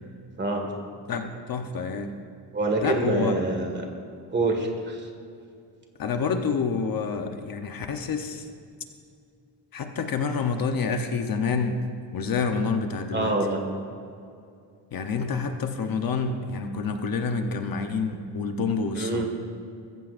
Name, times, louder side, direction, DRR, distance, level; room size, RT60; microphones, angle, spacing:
voice 1, 1.1-2.1 2.8-3.3 6.0-8.5 9.7-11.8 12.1-13.4 14.9-19.2, left 5 dB, 55° left, 5 dB, 1.0 m, -28 dB
voice 2, 2.5-3.9 4.3-5.1 13.1-13.6 18.9-19.2, right 2 dB, 25° right, 2 dB, 1.9 m, -26 dB
23.0 x 15.0 x 2.6 m, 2.4 s
wide cardioid pair, 175°, 42 cm